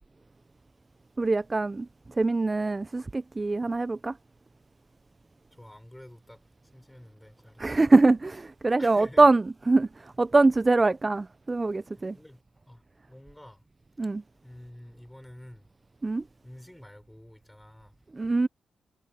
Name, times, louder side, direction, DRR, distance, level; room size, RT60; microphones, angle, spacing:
voice 1, 1.2-1.9 2.2-4.1 7.6-9.9 10.2-12.1 14.0-14.2 16.0-16.2 18.2-18.5, right 3 dB, 30° right, 0.4 m, -23 dB
voice 2, 5.5-6.4 6.7-7.8 8.8-9.3 12.0-12.4 12.7-13.6 14.4-15.7 16.4-18.0, left 1 dB, 5° left, 5.6 m, -49 dB
cardioid pair, 60°, 0 cm